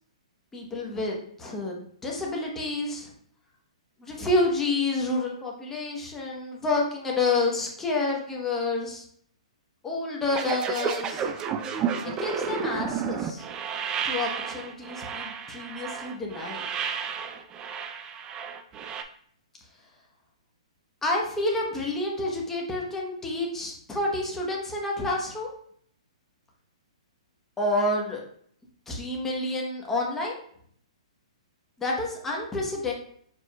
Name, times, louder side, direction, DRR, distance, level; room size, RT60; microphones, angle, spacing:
voice 1, 0.5-3.1 4.0-9.0 9.8-11.3 12.0-13.4 14.0-16.6 21.0-25.5 27.6-28.2 28.9-30.4 31.8-32.9, left 2 dB, 10° left, -2 dB, 0.9 m, -29 dB
sound 1, 10.3-19.0, right 7 dB, 20° right, 0.3 m, -31 dB
4.8 x 4.1 x 2.2 m, 0.62 s
hypercardioid pair, 145°, 4 cm